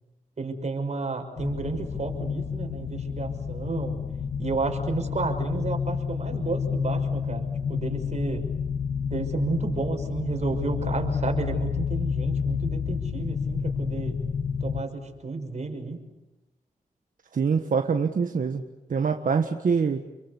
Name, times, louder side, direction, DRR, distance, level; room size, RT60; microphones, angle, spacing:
voice 1, 0.4-4.0 4.4-8.5 9.1-14.2 14.6-16.0, right 3 dB, 50° right, 4 dB, 6.0 m, -31 dB
sound 1, 1.4-14.8, left 6 dB, 80° left, 1.9 m, -29 dB
voice 2, 17.3-18.6 18.9-20.1, right 5 dB, 70° right, 6 dB, 1.6 m, -24 dB
30.0 x 22.5 x 8.3 m, 1.0 s
cardioid pair, 65°, 14 cm